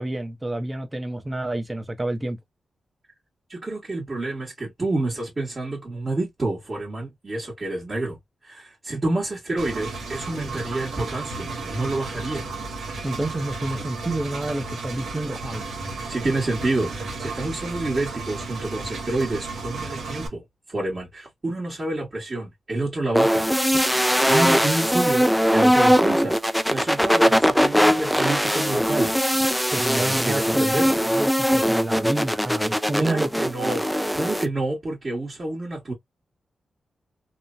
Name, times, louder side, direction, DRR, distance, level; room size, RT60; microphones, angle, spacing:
voice 1, 0.0-2.4 13.0-15.7 29.7-33.5, right 1 dB, 20° right, 0.7 m, -29 dB
voice 2, 3.5-8.2 8.4-12.5 16.1-20.4 20.7-23.4 24.3-26.4 26.7-29.1 29.9-30.9 32.9-35.9, right 2 dB, 35° right, 1.4 m, -28 dB
Engine, 9.6-20.3, right 3 dB, 80° right, 1.1 m, -33 dB
sound 1, 23.1-34.5, equal, ahead, 0.3 m, -20 dB
3.0 x 2.2 x 2.5 m
cardioid pair, 90°, 0 cm